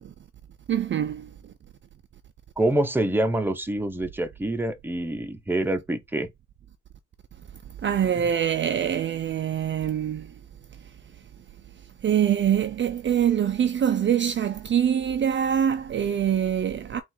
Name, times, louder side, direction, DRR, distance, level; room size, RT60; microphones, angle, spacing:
voice 1, 0.7-1.3 7.8-10.3 12.0-17.0, right 9 dB, 40° right, 0.5 m, -24 dB
voice 2, 2.6-6.3 8.2-8.3, right 1 dB, 5° right, 0.8 m, -26 dB
4.4 x 2.6 x 3.9 m
cardioid pair, 90°, 30 cm